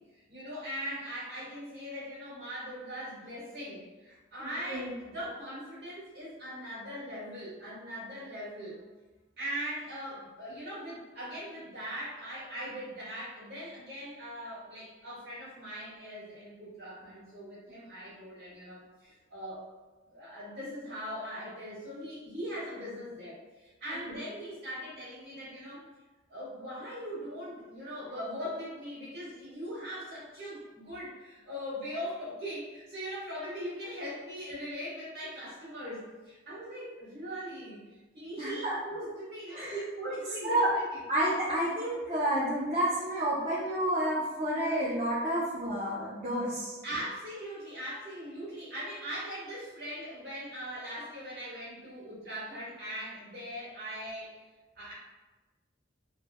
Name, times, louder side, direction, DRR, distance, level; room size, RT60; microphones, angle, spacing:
voice 1, 0.1-8.8 9.4-19.6 20.1-25.8 26.3-41.0 46.8-54.4 54.8-54.9, equal, 55° right, -9 dB, 1.4 m, -40 dB
voice 2, 4.4-4.9 24.1-24.2 38.4-38.8 39.5-39.8 40.4-40.7 41.1-46.8, right 1 dB, 35° right, -10 dB, 0.6 m, -30 dB
3.1 x 2.2 x 2.2 m, 1.2 s
head